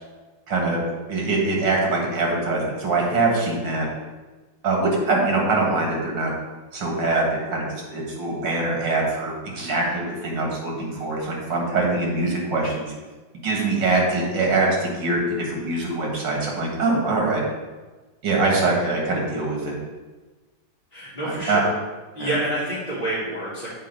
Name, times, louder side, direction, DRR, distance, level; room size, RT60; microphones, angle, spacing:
voice 1, 0.5-0.8 1.1-3.9 4.6-6.3 6.7-7.6 7.9-12.9 13.4-17.4 18.2-19.7 21.2-21.6 22.2-22.3, right 3 dB, 85° right, -1 dB, 2.2 m, -23 dB
voice 2, 20.9-21.7 22.1-23.7, right 1 dB, 20° left, -11 dB, 1.9 m, -27 dB
7.5 x 4.2 x 5.4 m, 1.2 s
omnidirectional pair, 1.9 m